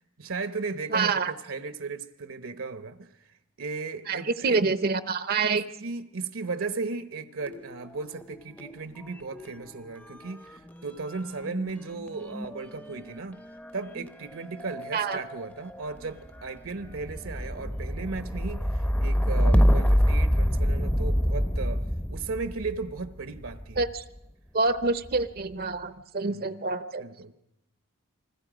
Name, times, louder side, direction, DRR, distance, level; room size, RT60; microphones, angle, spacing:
voice 1, 0.0-3.1 3.6-4.6 5.5-13.4 13.7-21.8 22.1-23.8 26.2-26.4 27.0-27.3, right 4 dB, 70° right, 10 dB, 1.0 m, -36 dB
voice 2, 0.9-1.3 4.1-5.6 14.9-15.2 23.8-24.0 24.5-27.0, right 4 dB, 45° right, 12 dB, 0.7 m, -27 dB
sound 1, 7.4-8.8 9.0-24.1 24.8-25.4, equal, 10° left, 0.7 m, -28 dB
29.0 x 21.0 x 5.1 m, 0.85 s
head